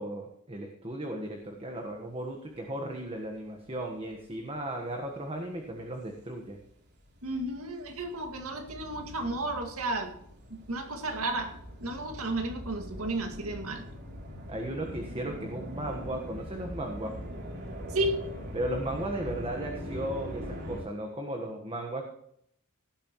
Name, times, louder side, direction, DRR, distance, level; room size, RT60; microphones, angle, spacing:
voice 1, 0.0-6.6 14.5-17.2 18.5-22.1, right 1 dB, 25° right, 2 dB, 1.4 m, -36 dB
sound 1, 4.2-4.5 5.1-20.8, equal, 50° right, 3.2 m, -42 dB
voice 2, 7.2-10.1 10.5-11.5 11.8-13.8 17.9-18.2, right 2 dB, 70° right, 4 dB, 2.2 m, -32 dB
17.5 x 11.0 x 3.1 m, 0.71 s
head